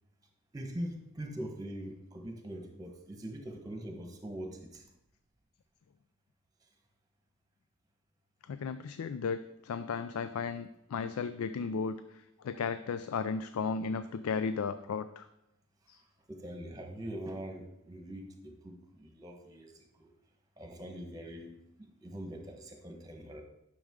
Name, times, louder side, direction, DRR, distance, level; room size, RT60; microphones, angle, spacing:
voice 1, 0.5-4.8 16.3-20.1 20.6-21.5 21.8-23.4, right 1 dB, 15° right, 3 dB, 1.1 m, -43 dB
voice 2, 8.5-15.3 15.9-16.0, left 5 dB, 90° left, 12 dB, 0.4 m, -35 dB
10.5 x 6.4 x 3.7 m, 0.85 s
head